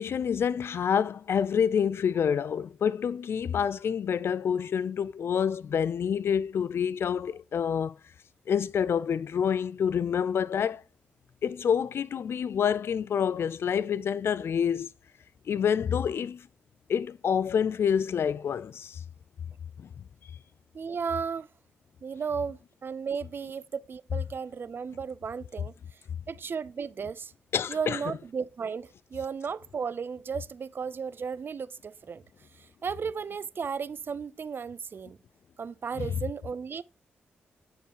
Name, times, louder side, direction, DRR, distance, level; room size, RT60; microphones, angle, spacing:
voice 1, 0.0-8.0 8.5-10.8 11.4-14.9 15.5-16.5 16.9-19.0 19.8-19.9 27.5-28.0, left 7 dB, 65° left, 0.4 m, -27 dB
voice 2, 20.7-21.5 22.0-25.7 26.3-27.3 27.7-32.2 32.6-35.2 35.6-36.8, right 6 dB, 50° right, 0.4 m, -34 dB
10.5 x 4.6 x 2.9 m
cardioid pair, 55°, 5 cm